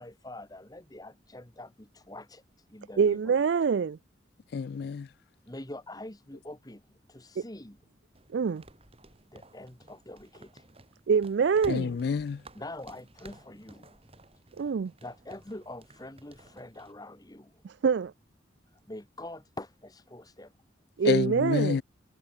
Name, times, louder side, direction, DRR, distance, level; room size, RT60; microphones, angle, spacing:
voice 1, 0.0-3.3 5.4-7.8 9.3-10.7 12.5-14.0 15.0-17.6 18.7-20.6 21.0-21.1, left 1 dB, 20° left, 1.8 m, -45 dB
voice 2, 3.0-4.0 7.4-7.5 8.3-8.6 11.1-12.0 14.6-14.9 17.6-18.1 21.0-21.8, right 6 dB, 70° right, 0.4 m, -25 dB
voice 3, 4.5-5.1 11.7-12.4 21.0-21.8, left 6 dB, 55° left, 0.3 m, -28 dB
sound 1, 8.1-16.9, right 2 dB, 30° right, 4.1 m, -54 dB
head